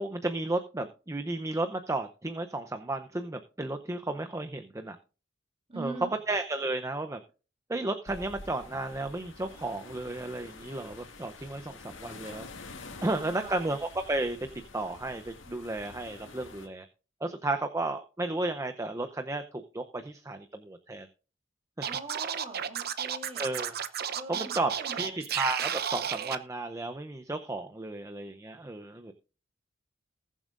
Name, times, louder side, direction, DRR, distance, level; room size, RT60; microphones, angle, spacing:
voice 1, 0.0-5.0 5.8-5.9 6.3-7.2 7.7-12.5 13.0-14.4 14.7-16.9 17.2-21.1 21.8-21.9 23.4-23.8 24.3-29.1, right 2 dB, 15° right, 7 dB, 0.6 m, -33 dB
voice 2, 5.7-6.2 13.1-13.7 21.8-23.5 24.1-25.2, right 3 dB, 30° right, 3 dB, 3.0 m, -42 dB
sound 1, 8.1-16.7, left 3 dB, 75° left, 1.9 m, -48 dB
Scratching (performance technique), 21.8-26.4, right 8 dB, 55° right, 0.7 m, -32 dB
20.0 x 7.3 x 2.5 m, 0.34 s
head